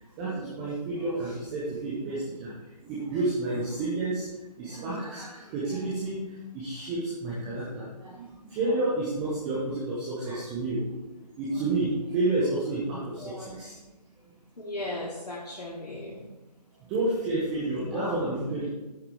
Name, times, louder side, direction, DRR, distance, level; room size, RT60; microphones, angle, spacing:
voice 1, 0.2-2.5 2.8-4.3 4.6-10.8 11.4-13.8 16.9-18.7, right 2 dB, 5° right, -7 dB, 0.5 m, -30 dB
voice 2, 13.2-13.5 14.6-16.2 17.9-18.2, left 1 dB, 75° left, -6 dB, 2.4 m, -37 dB
10.5 x 9.4 x 3.5 m, 1.1 s
figure-of-eight pair, 150°, 21 cm